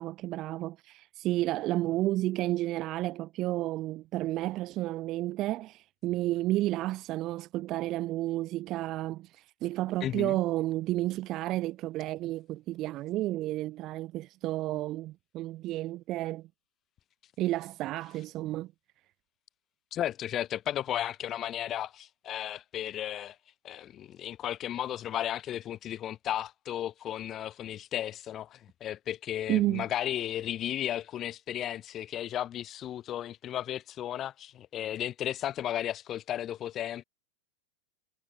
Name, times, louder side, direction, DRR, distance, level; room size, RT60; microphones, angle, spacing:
voice 1, 0.0-16.5 17.4-18.7 29.5-29.9, right 16 dB, 35° right, 1.8 m, -31 dB
voice 2, 10.0-10.4 19.9-23.4 23.6-37.0, left 11 dB, 30° left, 7.5 m, -34 dB
figure-of-eight pair, 90°, 0 cm